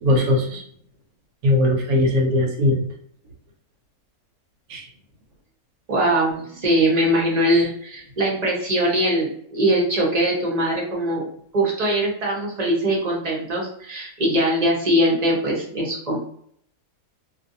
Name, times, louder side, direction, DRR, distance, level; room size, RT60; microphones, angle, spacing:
voice 1, 0.0-0.6 1.4-2.9 4.7-4.9, left 1 dB, 70° right, 2 dB, 1.1 m, -19 dB
voice 2, 5.9-11.2 11.5-16.2, right 1 dB, 35° right, -4 dB, 0.8 m, -21 dB
2.6 x 2.5 x 2.5 m, 0.65 s
omnidirectional pair, 1.7 m